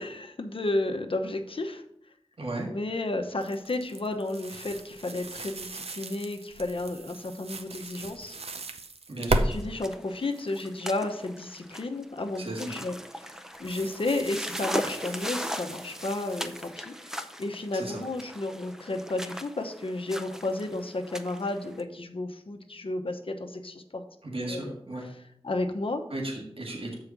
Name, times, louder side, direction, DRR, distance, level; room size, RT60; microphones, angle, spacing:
voice 1, 0.0-1.8 2.7-8.4 9.3-13.3 13.6-24.0 24.5-24.7 25.4-26.0, left 2 dB, 60° left, 5 dB, 0.9 m, -32 dB
voice 2, 2.4-2.7 9.1-9.5 12.4-12.8 17.7-18.0 24.2-25.1 26.1-26.9, right 1 dB, 65° right, -1 dB, 1.8 m, -35 dB
sound 1, 3.4-9.5 10.0-10.6 12.5-12.8 13.5-16.7, right 2 dB, 80° right, 0.6 m, -36 dB
sound 2, 9.5-21.8, equal, 5° right, 0.6 m, -39 dB
6.7 x 4.8 x 6.0 m, 0.73 s
wide cardioid pair, 50°, 10 cm